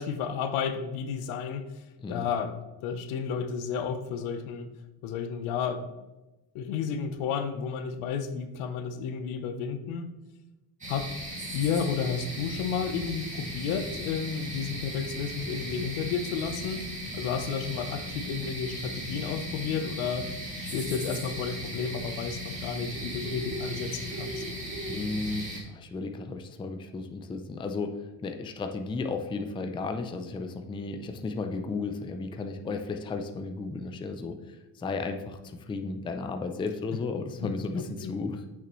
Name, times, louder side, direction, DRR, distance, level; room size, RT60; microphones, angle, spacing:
voice 1, 0.0-4.7 5.0-5.9 6.5-10.1 10.9-11.1 11.5-16.8 17.1-20.3 20.6-24.4 37.4-38.1, left 6 dB, 80° left, 10 dB, 0.9 m, -32 dB
sound 1, 10.8-25.6, equal, 15° right, 2.3 m, -37 dB
voice 2, 24.9-38.5, left 3 dB, 10° left, 7 dB, 0.4 m, -34 dB
8.5 x 6.1 x 3.1 m, 1.1 s
cardioid pair, 125°, 48 cm